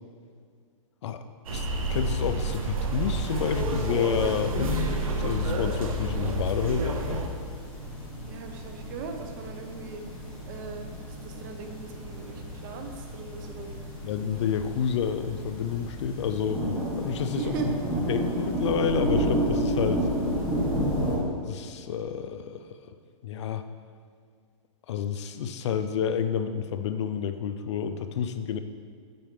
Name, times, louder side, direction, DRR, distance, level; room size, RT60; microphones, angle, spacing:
sound 1, 1.4-7.3, right 2 dB, 90° right, 1.0 m, -29 dB
voice 1, 1.5-7.2 14.0-16.6 17.0-17.6 18.1-20.1 21.5-23.0 23.2-23.7 24.9-28.6, left 7 dB, 55° left, 10 dB, 0.5 m, -29 dB
sound 2, 3.1-21.2, right 1 dB, 5° left, 1.7 m, -32 dB
voice 2, 8.3-10.2 10.4-13.9 17.3-17.8, right 5 dB, 35° right, 4 dB, 0.7 m, -39 dB
9.2 x 4.5 x 3.7 m, 2.1 s
hypercardioid pair, 160°, 18 cm